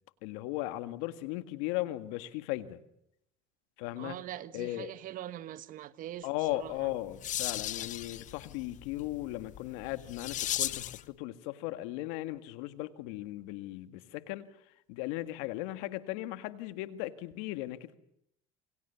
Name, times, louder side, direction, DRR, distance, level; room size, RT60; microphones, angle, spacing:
voice 1, 0.2-2.8 3.8-4.2 4.5-4.9 6.2-14.5 14.9-18.0, left 16 dB, 75° left, 1.9 m, -37 dB
voice 2, 4.0-6.9, right 12 dB, 55° right, 1.5 m, -43 dB
sound 1, 6.7-11.1, left 12 dB, 50° left, 1.0 m, -37 dB
28.0 x 24.0 x 7.1 m
supercardioid pair, 90°, 17 cm